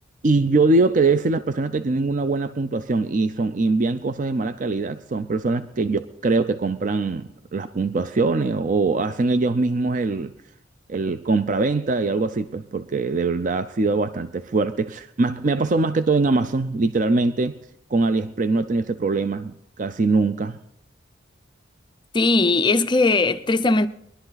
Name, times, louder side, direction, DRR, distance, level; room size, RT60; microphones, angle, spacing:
voice 1, 0.2-10.3 10.9-17.6 17.9-20.6, right 3 dB, 40° right, 0.5 m, -22 dB
voice 2, 22.1-23.9, left 3 dB, 25° left, 0.5 m, -19 dB
22.0 x 11.5 x 4.0 m
head